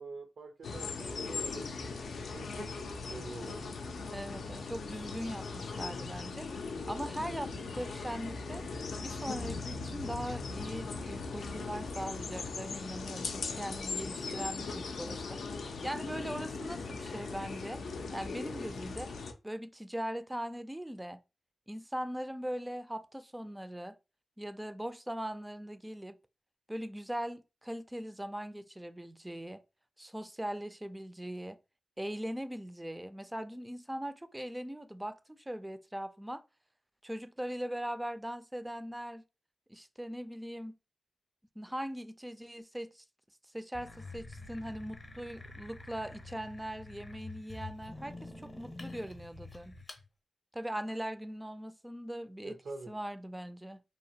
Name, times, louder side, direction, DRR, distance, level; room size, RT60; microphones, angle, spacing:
voice 1, 0.0-3.7 52.4-52.9, right 3 dB, 75° right, 0.5 m, -46 dB
sound 1, 0.6-19.3, left 4 dB, 85° left, 0.4 m, -39 dB
voice 2, 4.1-6.5 6.9-8.6 9.0-15.4 15.8-17.8 18.1-19.1 19.4-21.2 21.7-24.0 24.4-26.2 26.7-29.6 30.0-31.6 32.0-36.4 37.0-39.2 39.7-40.8 41.6-43.0 43.5-49.8 50.5-52.6 52.9-53.8, equal, 10° right, 0.3 m, -40 dB
sound 2, 43.7-50.0, left 2 dB, 35° left, 0.6 m, -47 dB
2.8 x 2.0 x 2.8 m
cardioid pair, 70°, 0 cm